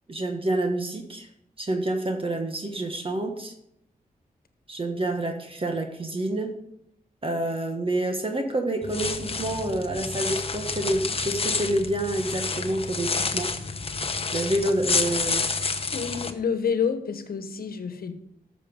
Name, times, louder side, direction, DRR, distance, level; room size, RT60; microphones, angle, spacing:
voice 1, 0.1-1.3 1.6-3.5 4.7-6.6 7.2-13.5 14.3-15.5, right 1 dB, 35° right, 4 dB, 1.4 m, -28 dB
sound 1, 8.8-16.3, left 4 dB, 40° left, 1.0 m, -29 dB
voice 2, 15.9-18.1, left 6 dB, 85° left, 9 dB, 1.2 m, -28 dB
13.0 x 6.8 x 5.3 m, 0.76 s
wide cardioid pair, 95°, 15 cm